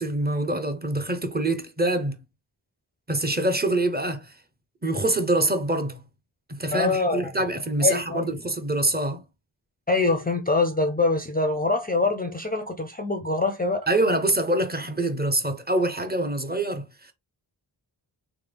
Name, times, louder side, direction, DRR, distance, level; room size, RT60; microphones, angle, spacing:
voice 1, 0.0-2.2 3.1-4.3 4.8-6.0 6.5-9.2 13.9-17.1, right 2 dB, 20° right, 0.6 m, -25 dB
voice 2, 6.7-7.3 7.8-8.3 9.9-13.9, left 3 dB, 20° left, 0.4 m, -24 dB
3.4 x 2.0 x 3.3 m
wide cardioid pair, 50°, 46 cm